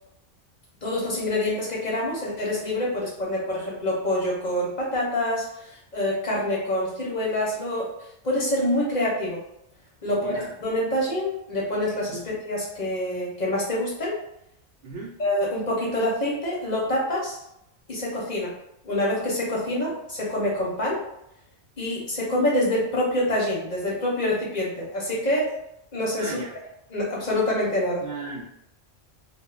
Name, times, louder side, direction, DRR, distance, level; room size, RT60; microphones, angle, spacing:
voice 1, 0.8-7.9 8.2-9.4 10.0-12.2 12.5-14.2 15.2-17.4 17.9-18.5 18.8-21.0 21.8-25.6 25.9-26.3 26.9-28.0, left 1 dB, 45° left, -5 dB, 0.7 m, -26 dB
voice 2, 10.0-10.5 12.1-12.2 14.8-15.2 19.8-19.9 26.2-26.5 28.0-28.4, right 3 dB, 80° right, -5 dB, 0.8 m, -36 dB
2.1 x 2.0 x 3.6 m, 0.80 s
omnidirectional pair, 1.1 m